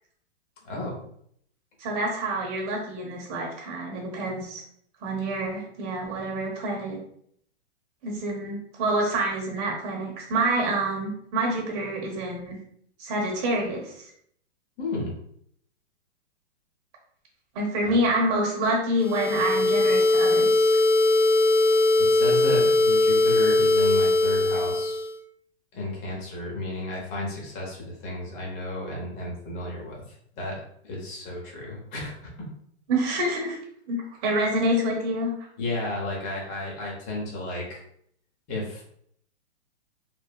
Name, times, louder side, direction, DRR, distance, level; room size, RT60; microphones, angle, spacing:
voice 1, 0.6-1.0 14.8-15.1 17.8-18.0 22.0-25.1 25.7-32.3 35.6-37.8 38.5-38.8, left 2 dB, 20° left, -2 dB, 0.7 m, -33 dB
voice 2, 1.8-4.6 5.0-7.0 8.0-12.6 13.0-13.9 17.5-20.7 32.9-33.6 33.9-35.3, right 1 dB, 30° right, -1 dB, 0.9 m, -27 dB
sound 1, 19.0-25.1, left 2 dB, 80° left, 0.9 m, -20 dB
3.1 x 2.0 x 2.2 m, 0.67 s
hypercardioid pair, 145°, 34 cm